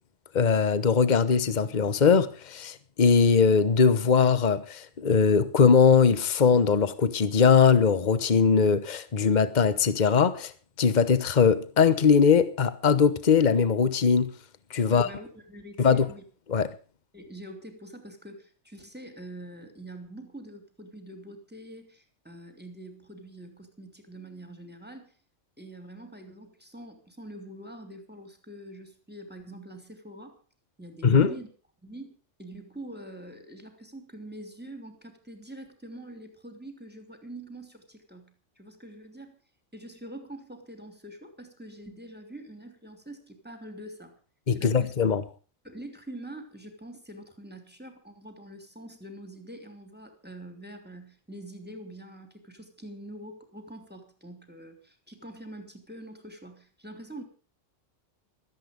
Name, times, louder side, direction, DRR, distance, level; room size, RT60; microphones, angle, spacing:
voice 1, 0.3-10.5 10.8-14.3 14.7-15.1 15.8-16.0 16.5-16.7 31.0-31.3 44.5-45.2, left 6 dB, 40° left, 1.2 m, -21 dB
voice 2, 14.8-16.2 17.1-25.1 25.6-30.4 30.8-31.5 31.8-32.1 32.4-39.4 39.7-44.2 44.5-45.1 45.6-57.2, right 1 dB, 10° right, 3.2 m, -44 dB
17.0 x 13.5 x 5.2 m
omnidirectional pair, 1.3 m